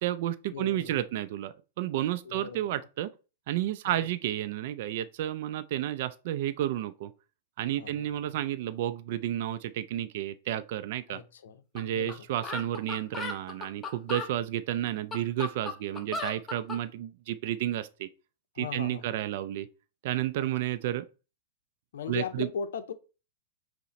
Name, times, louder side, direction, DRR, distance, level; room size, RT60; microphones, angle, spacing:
voice 1, 0.0-3.1 3.5-7.1 7.6-11.2 11.7-18.1 18.6-19.7 20.0-21.0 22.1-22.5, right 13 dB, 60° right, 0.3 m, -31 dB
voice 2, 0.5-1.1 2.2-2.8 3.8-4.1 7.8-8.4 11.1-11.6 11.9-12.3 18.5-19.2 20.3-20.5 21.9-22.9, left 6 dB, 70° left, 0.6 m, -38 dB
sound 1, 11.8-11.9 12.1-12.2 12.4-14.3 14.9-16.8, left 3 dB, 15° left, 0.8 m, -36 dB
5.4 x 2.1 x 4.1 m
hypercardioid pair, 110°, 0 cm